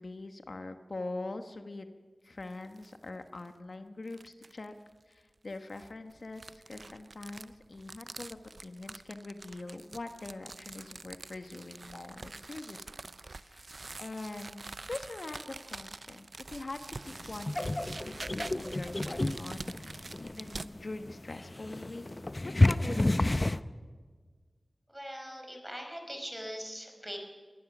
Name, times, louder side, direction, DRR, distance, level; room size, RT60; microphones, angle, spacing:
voice 1, 0.0-1.9 2.2-4.7 5.1-12.9 13.3-22.0 22.5-23.3, left 2 dB, 70° left, 7 dB, 1.2 m, -43 dB
sound 1, 2.4-2.9 3.4-3.5 4.1-4.6 5.5-20.7, right 3 dB, 70° right, 0.5 m, -46 dB
sound 2, 17.1-23.6, left 2 dB, 40° left, 0.7 m, -30 dB
voice 2, 24.9-27.2, equal, 10° right, 2 dB, 5.1 m, -41 dB
23.0 x 18.5 x 6.1 m, 1.5 s
wide cardioid pair, 45°, 0 cm